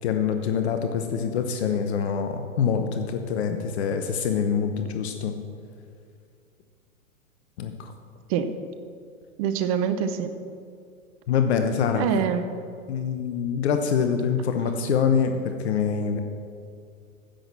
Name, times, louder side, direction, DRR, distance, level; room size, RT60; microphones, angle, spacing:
voice 1, 0.0-5.3 7.6-7.9 11.3-12.0 12.9-16.2, left 6 dB, 50° left, 6 dB, 1.0 m, -25 dB
voice 2, 9.4-10.3 11.9-12.4, right 7 dB, 25° right, 10 dB, 0.5 m, -25 dB
10.0 x 7.8 x 7.3 m, 2.3 s
figure-of-eight pair, 110°, 43 cm